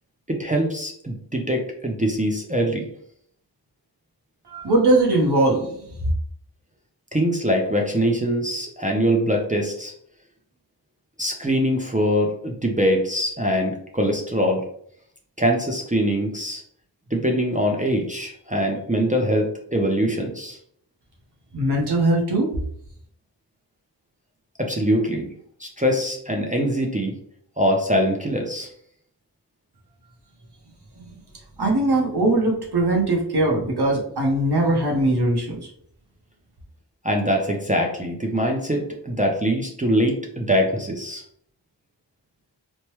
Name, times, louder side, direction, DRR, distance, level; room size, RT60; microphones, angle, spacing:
voice 1, 0.3-2.9 7.1-9.9 11.2-14.7 15.4-16.6 17.1-20.6 24.6-25.3 25.6-27.1 27.6-28.7 37.0-41.2, equal, 20° right, 1 dB, 0.5 m, -23 dB
voice 2, 4.5-5.7 21.5-22.5 31.6-35.6, right 2 dB, 60° right, -1 dB, 0.8 m, -20 dB
3.1 x 2.2 x 2.9 m, 0.65 s
wide cardioid pair, 55°, 44 cm